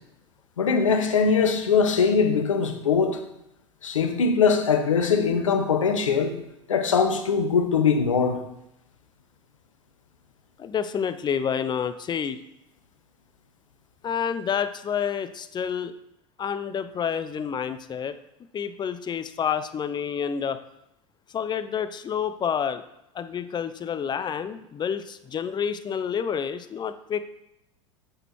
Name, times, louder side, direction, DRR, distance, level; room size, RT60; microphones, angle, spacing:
voice 1, 0.6-3.2 3.8-6.4 6.7-8.4, left 5 dB, 85° left, 6 dB, 1.1 m, -21 dB
voice 2, 10.6-12.4 14.0-15.9 16.4-18.2 18.5-20.6 21.3-22.8 23.1-27.3, left 7 dB, 25° left, 12 dB, 0.7 m, -29 dB
7.7 x 6.8 x 4.4 m, 0.83 s
hypercardioid pair, 85°, 16 cm